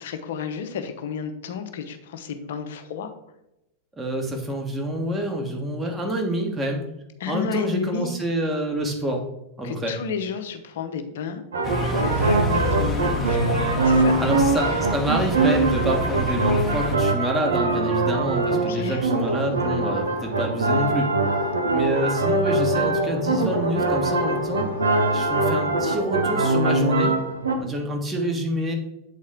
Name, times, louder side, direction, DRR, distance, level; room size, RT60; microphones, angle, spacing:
voice 1, 0.0-3.1 7.2-8.2 9.6-11.4 11.9-14.2 18.5-19.0, left 7 dB, 60° left, 8 dB, 0.8 m, -31 dB
voice 2, 4.0-6.9 7.3-9.2 9.6-10.0 14.2-21.1 21.7-24.7 25.1-27.1 27.6-28.7, right 1 dB, 15° right, 2 dB, 1.4 m, -27 dB
sound 1, 11.5-27.6, right 2 dB, 70° right, 0.8 m, -23 dB
sound 2, 11.6-17.0, equal, 15° left, 1.0 m, -28 dB
sound 3, 17.8-26.6, left 3 dB, 90° right, 1.1 m, -34 dB
8.1 x 4.2 x 3.8 m, 0.88 s
figure-of-eight pair, 90°, 0 cm